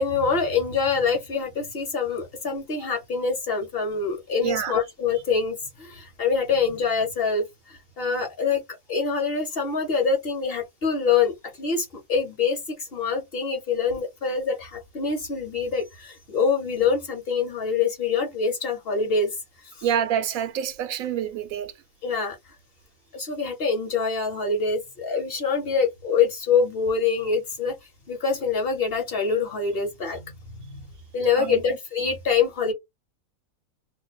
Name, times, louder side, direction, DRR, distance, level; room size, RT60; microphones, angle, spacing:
voice 1, 0.0-8.6 8.9-19.4 19.7-19.8 22.0-22.4 23.1-27.8 28.1-30.3 30.6-30.8 31.1-32.7, left 5 dB, 50° left, 1.0 m, -25 dB
voice 2, 4.4-4.8 19.8-21.7 31.3-31.6, right 9 dB, 75° right, 1.0 m, -27 dB
2.6 x 2.1 x 4.0 m
omnidirectional pair, 1.5 m